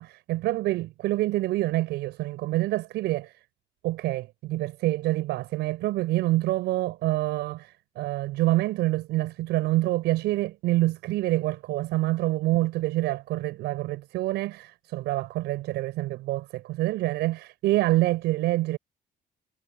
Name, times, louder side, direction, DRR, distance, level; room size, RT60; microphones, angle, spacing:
voice 1, 0.0-3.4 3.8-18.8, right 17 dB, 85° right, 6.9 m, -26 dB
cardioid pair, 110°, 17 cm